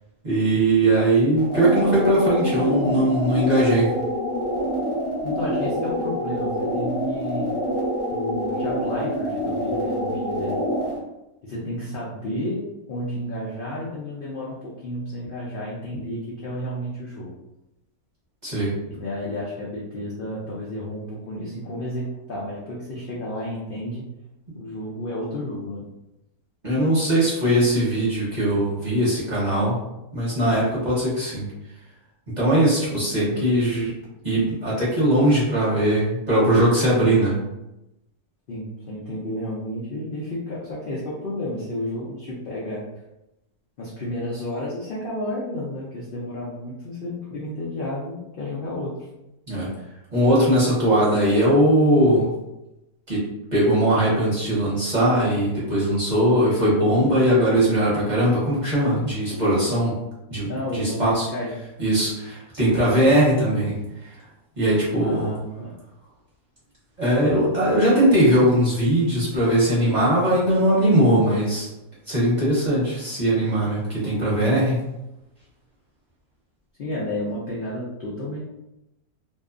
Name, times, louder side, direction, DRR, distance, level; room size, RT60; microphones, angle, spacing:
voice 1, 0.2-3.9 18.4-18.7 26.6-29.8 30.1-31.5 32.4-33.9 34.2-37.4 49.5-49.7 50.1-52.3 53.1-53.3 53.5-60.0 60.3-61.3 61.8-63.8 64.6-65.3 67.0-71.7 72.1-74.8, right 1 dB, 35° right, -8 dB, 0.9 m, -20 dB
sound 1, 1.4-11.0, equal, 30° left, 0.6 m, -26 dB
voice 2, 5.2-7.5 8.1-10.6 11.4-17.3 18.9-24.0 24.6-25.9 38.5-42.9 43.8-48.9 60.5-61.5 65.0-65.8 76.8-78.4, left 1 dB, 80° left, -6 dB, 0.4 m, -31 dB
2.6 x 2.3 x 2.4 m, 0.92 s
omnidirectional pair, 1.6 m